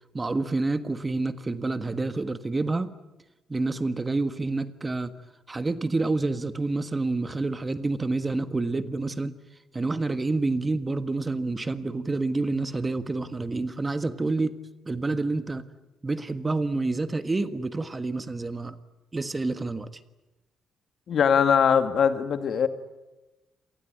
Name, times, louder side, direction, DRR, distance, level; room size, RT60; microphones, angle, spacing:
voice 1, 0.1-2.9 3.5-5.1 5.5-9.3 9.7-14.5 14.8-15.6 16.0-18.8 19.1-19.9, right 3 dB, 25° right, 11 dB, 1.5 m, -28 dB
voice 2, 21.1-22.7, left 7 dB, 60° left, 9 dB, 2.2 m, -21 dB
27.5 x 19.0 x 9.5 m, 1.1 s
cardioid pair, 90°, 0 cm